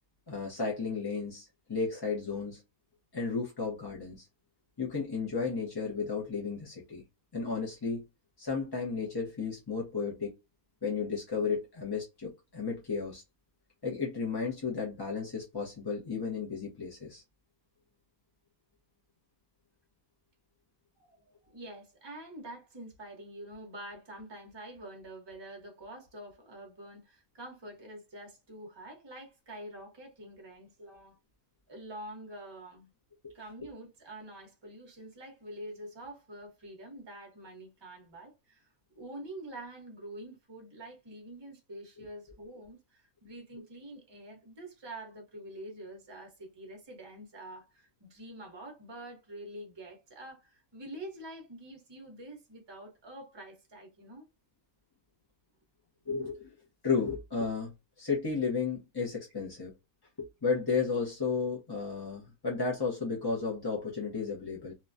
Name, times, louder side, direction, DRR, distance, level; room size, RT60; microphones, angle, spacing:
voice 1, 0.3-2.6 3.1-4.3 4.8-7.0 7.3-8.1 8.4-10.4 10.8-13.2 13.8-17.2 33.2-33.3 56.1-56.6 56.8-59.7 60.2-64.7, left 5 dB, 25° left, 0.5 m, -33 dB
voice 2, 21.5-31.2 31.7-32.9 33.3-38.7 38.9-54.2, right 1 dB, 20° right, 0.8 m, -46 dB
2.9 x 2.2 x 2.5 m
omnidirectional pair, 1.5 m